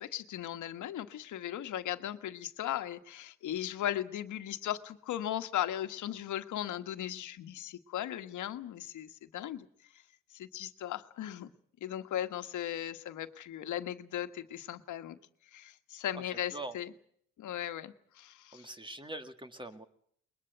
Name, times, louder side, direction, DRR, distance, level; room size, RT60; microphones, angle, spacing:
voice 1, 0.0-9.7 10.3-11.5 11.8-15.2 15.5-16.9 17.4-18.7, left 11 dB, 75° left, 9 dB, 1.5 m, -37 dB
voice 2, 16.3-16.7 18.5-19.9, right 1 dB, 15° right, 9 dB, 2.1 m, -43 dB
22.0 x 21.5 x 8.0 m, 0.64 s
cardioid pair, 90°, 30 cm